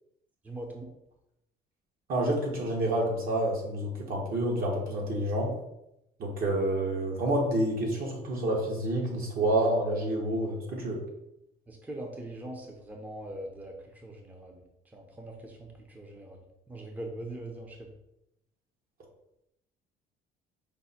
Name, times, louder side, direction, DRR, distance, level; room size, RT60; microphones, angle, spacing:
voice 1, 0.4-0.9 11.7-17.9, right 1 dB, 10° right, 2 dB, 0.6 m, -42 dB
voice 2, 2.1-5.5 6.2-11.0, right 1 dB, 60° right, -1 dB, 1.3 m, -28 dB
5.2 x 2.1 x 4.2 m, 0.84 s
cardioid pair, 110°, 17 cm